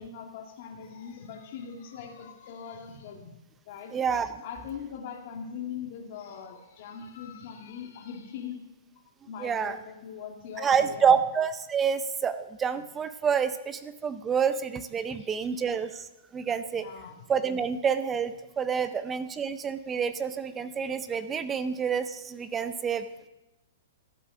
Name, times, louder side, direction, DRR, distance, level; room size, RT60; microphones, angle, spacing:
voice 1, 0.0-3.3 3.7-3.9 4.4-8.6 9.3-11.2 16.7-17.2 18.8-18.9, left 7 dB, 55° left, 1 dB, 1.8 m, -41 dB
voice 2, 3.9-4.3 9.4-9.8 10.6-16.1 16.3-16.9 17.3-23.1, right 7 dB, 15° right, 12 dB, 0.6 m, -28 dB
13.5 x 8.2 x 6.1 m, 1.0 s
hypercardioid pair, 135°, 0 cm